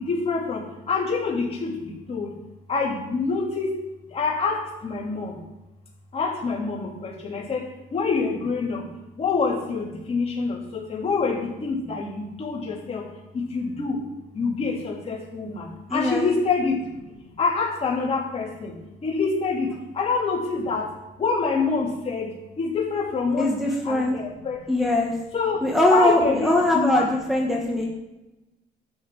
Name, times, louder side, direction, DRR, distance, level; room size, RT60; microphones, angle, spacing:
voice 1, 0.0-2.3 2.7-3.7 4.1-5.4 6.1-8.8 9.2-13.0 13.3-14.0 14.3-16.8 17.4-18.7 19.0-20.9 21.2-22.3 22.6-24.6 25.3-25.6 25.9-27.1, left 4 dB, 35° left, -2 dB, 3.2 m, -26 dB
voice 2, 15.9-16.3 23.4-24.2 24.7-25.1 25.6-27.9, left 1 dB, ahead, -3 dB, 1.6 m, -21 dB
12.0 x 8.2 x 4.9 m, 1.0 s
cardioid pair, 110°, 17 cm